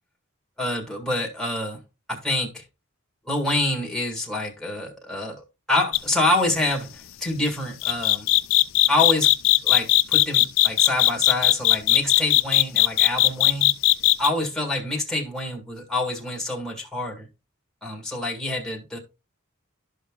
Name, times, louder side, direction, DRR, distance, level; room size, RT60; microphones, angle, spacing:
voice 1, 0.6-1.8 2.1-2.6 3.3-8.3 8.9-9.3 9.6-13.8 14.2-17.3 17.8-19.0, left 2 dB, ahead, 2.0 m, -26 dB
sound 1, 5.9-6.2 7.8-14.3, left 17 dB, 70° left, 0.5 m, -17 dB
13.5 x 5.7 x 2.3 m
head